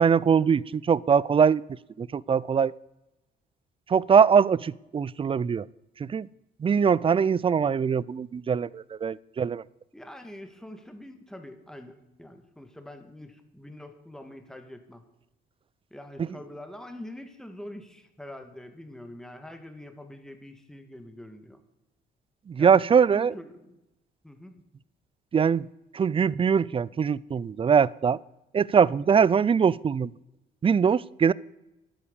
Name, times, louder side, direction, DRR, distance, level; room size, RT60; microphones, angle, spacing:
voice 1, 0.0-1.6 2.0-2.7 3.9-5.6 6.1-6.3 6.6-9.6 16.2-16.3 22.5-23.3 25.3-25.7 25.9-28.2 28.5-30.1 30.6-31.3, right 6 dB, 25° right, 23 dB, 0.4 m, -22 dB
voice 2, 9.9-15.0 15.9-21.6 22.6-22.8 23.1-23.8 24.2-24.6, left 1 dB, 5° left, 6 dB, 1.9 m, -44 dB
11.5 x 8.7 x 7.1 m, 0.92 s
cardioid pair, 90°, 20 cm